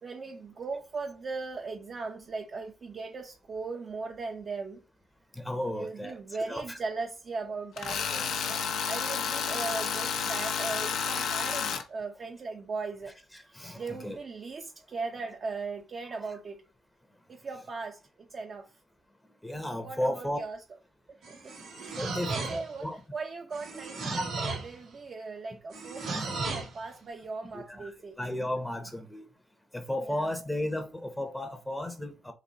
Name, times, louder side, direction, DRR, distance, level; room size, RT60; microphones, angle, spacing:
voice 1, 0.0-4.8 5.7-8.1 8.4-13.1 13.4-16.6 17.3-18.7 19.8-20.6 21.3-28.2 30.0-30.3, right 4 dB, 45° right, 0.7 m, -38 dB
voice 2, 5.3-6.2 6.5-6.8 8.1-8.3 13.3-14.2 19.4-20.4 22.0-23.0 24.2-24.3 27.4-29.3 29.7-32.3, left 1 dB, 5° left, 0.8 m, -34 dB
Tools, 7.8-11.8, left 7 dB, 85° left, 0.7 m, -31 dB
sound 1, 21.2-22.8 23.5-24.8 25.7-26.8, right 3 dB, 85° right, 2.2 m, -35 dB
4.1 x 2.7 x 3.8 m
cardioid pair, 110°, 0 cm